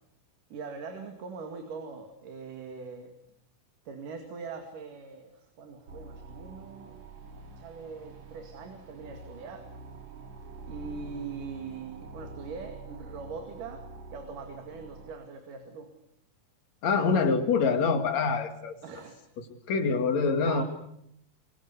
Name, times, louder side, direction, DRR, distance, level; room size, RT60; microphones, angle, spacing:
voice 1, 0.5-3.1 3.9-7.0 7.6-9.7 10.7-15.9 18.8-19.3 20.4-20.6, right 5 dB, 75° right, 5 dB, 3.8 m, -42 dB
sound 1, 5.9-15.1, right 3 dB, 60° right, 3.9 m, -46 dB
voice 2, 16.8-18.7 19.7-20.6, left 5 dB, 55° left, 7 dB, 3.3 m, -25 dB
25.0 x 23.0 x 8.1 m, 0.75 s
omnidirectional pair, 3.8 m